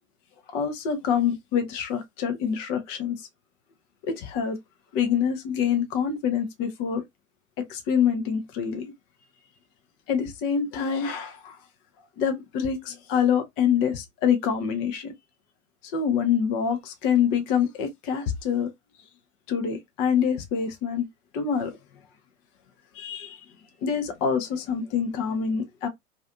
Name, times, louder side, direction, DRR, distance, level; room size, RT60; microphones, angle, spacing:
voice 1, 0.5-3.2 4.0-4.6 4.9-7.0 7.7-8.8 10.1-11.6 12.2-15.1 15.9-18.7 19.5-21.1 21.3-21.7 23.0-23.4 23.8-25.9, left 7 dB, 20° left, 0.4 m, -26 dB
2.4 x 2.3 x 2.4 m
figure-of-eight pair, 105°, 44 cm